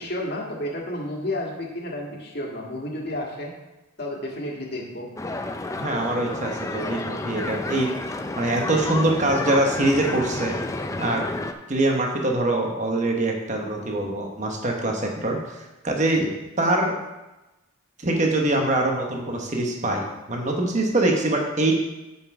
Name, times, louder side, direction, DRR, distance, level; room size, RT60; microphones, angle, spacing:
voice 1, 0.0-3.5 4.0-5.1, left 1 dB, 45° left, -2 dB, 1.8 m, -31 dB
sound 1, 5.2-11.5, left 2 dB, 15° left, 0.4 m, -30 dB
voice 2, 5.7-7.9 8.4-10.6 11.0-11.2 11.7-15.6 15.8-16.3 16.6-17.0 18.0-21.7, right 2 dB, 35° right, 1 dB, 1.0 m, -23 dB
7.2 x 6.8 x 4.8 m, 1.0 s
head